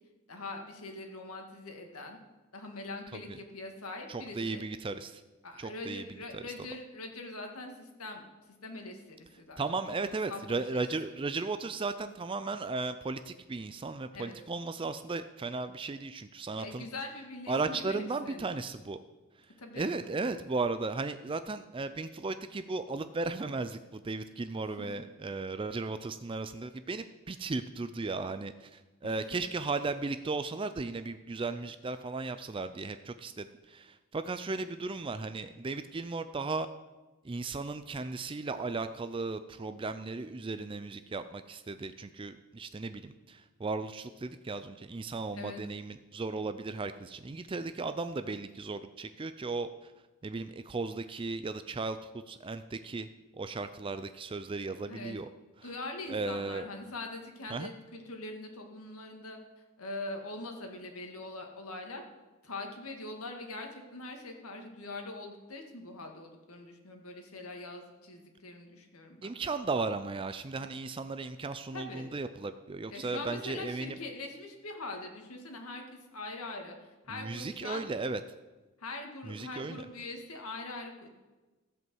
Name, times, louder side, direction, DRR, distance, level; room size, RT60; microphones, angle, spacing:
voice 1, 0.3-2.2 2.5-4.6 5.4-9.6 10.0-10.5 14.1-14.4 16.6-18.5 19.6-20.2 24.8-24.9 29.0-29.4 45.3-45.6 54.9-55.2 55.6-59.4 59.8-62.0 62.4-69.4 71.7-72.1 72.9-77.8 78.8-81.1, left 2 dB, 90° left, 3 dB, 2.0 m, -43 dB
voice 2, 4.1-5.2 5.6-6.4 9.6-16.9 17.5-19.0 19.5-36.7 37.2-49.9 50.2-53.1 53.4-55.3 55.6-55.7 56.1-56.7 57.5-57.7 69.2-74.0 77.1-78.2 79.2-79.8, right 3 dB, 25° right, 10 dB, 0.4 m, -36 dB
15.0 x 5.4 x 7.7 m, 1.2 s
head